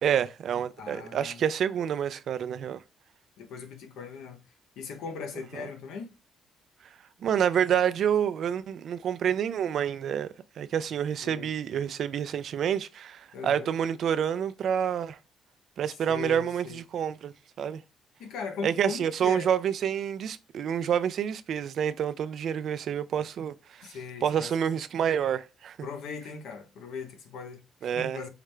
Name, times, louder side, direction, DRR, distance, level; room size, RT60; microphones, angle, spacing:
voice 1, 0.0-2.8 7.2-10.3 10.6-15.2 15.8-17.8 18.6-23.9 24.2-25.9 27.8-28.2, right 8 dB, 65° right, 0.4 m, -28 dB
voice 2, 0.8-1.4 3.4-4.4 4.8-6.1 11.2-11.5 13.3-13.7 16.1-16.8 18.2-19.5 23.8-24.6 25.8-28.3, left 5 dB, 85° left, 0.9 m, -39 dB
4.7 x 2.1 x 3.3 m
cardioid pair, 90°, 0 cm